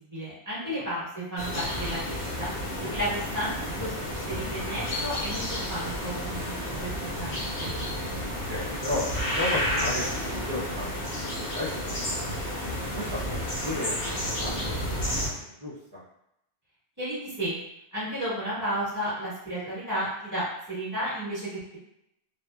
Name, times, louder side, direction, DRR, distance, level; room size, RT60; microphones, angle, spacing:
voice 1, 0.0-2.5 2.9-6.9 7.2-7.7 17.0-17.6 17.9-21.8, equal, 15° right, -11 dB, 1.3 m, -33 dB
sound 1, 1.4-15.3, equal, 55° left, 0.8 m, -31 dB
voice 2, 8.5-10.9 11.2-12.1 12.9-13.9 14.2-16.0, left 1 dB, 40° right, -10 dB, 0.3 m, -34 dB
2.6 x 2.1 x 2.2 m, 0.79 s
omnidirectional pair, 1.2 m